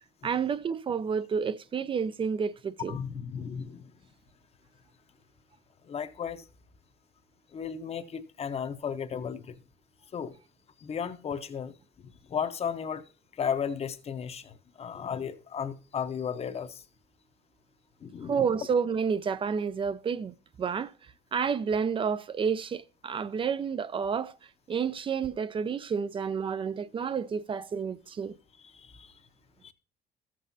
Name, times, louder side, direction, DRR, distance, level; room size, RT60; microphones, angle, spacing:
voice 1, 0.2-3.0 18.3-20.9 21.3-24.3 24.7-28.4, right 6 dB, 30° right, 0.4 m, -30 dB
voice 2, 2.9-3.9 5.8-6.4 7.5-9.6 10.1-10.4 10.8-11.7 12.0-16.8 18.0-18.5 28.6-29.2 29.6-29.7, left 7 dB, 35° left, 0.8 m, -35 dB
13.5 x 7.6 x 2.7 m
cardioid pair, 110°, 17 cm